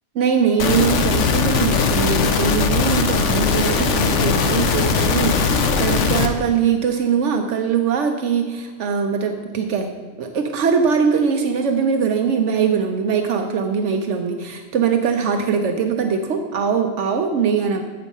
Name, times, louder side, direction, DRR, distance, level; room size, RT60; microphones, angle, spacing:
voice 1, 0.1-17.8, right 6 dB, 70° right, 5 dB, 1.0 m, -21 dB
sound 1, 0.6-6.3, left 5 dB, 70° left, 1.0 m, -19 dB
8.1 x 5.5 x 5.3 m, 1.4 s
omnidirectional pair, 1.3 m